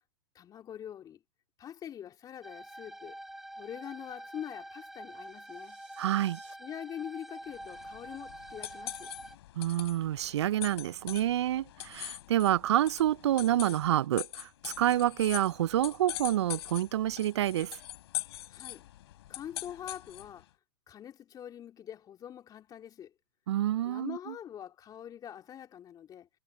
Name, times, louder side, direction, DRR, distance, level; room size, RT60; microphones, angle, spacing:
voice 1, 0.3-1.2 1.6-3.2 3.6-5.8 6.6-9.1 18.5-18.8 19.3-20.5 20.9-23.1 23.8-26.3, left 10 dB, 25° left, 3.1 m, -44 dB
sound 1, 2.4-9.4, right 1 dB, ahead, 3.3 m, -46 dB
sound 2, 5.0-6.5, right 6 dB, 85° right, 6.7 m, -60 dB
voice 2, 6.0-6.4 9.6-17.8 23.5-24.2, right 12 dB, 70° right, 0.4 m, -28 dB
sound 3, 7.6-20.4, left 14 dB, 60° left, 4.3 m, -43 dB
hypercardioid pair, 110°, 15 cm